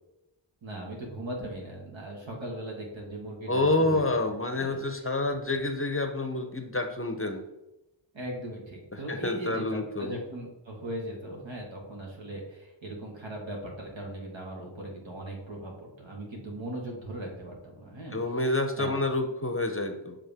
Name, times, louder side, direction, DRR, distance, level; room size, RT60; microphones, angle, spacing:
voice 1, 0.6-4.1 4.5-4.8 8.1-18.2 18.8-19.0, right 1 dB, 75° right, -1 dB, 1.8 m, -39 dB
voice 2, 3.5-7.4 9.1-10.1 18.1-20.2, left 2 dB, 30° left, 6 dB, 0.6 m, -28 dB
7.6 x 3.6 x 3.5 m, 0.96 s
wide cardioid pair, 75°, 46 cm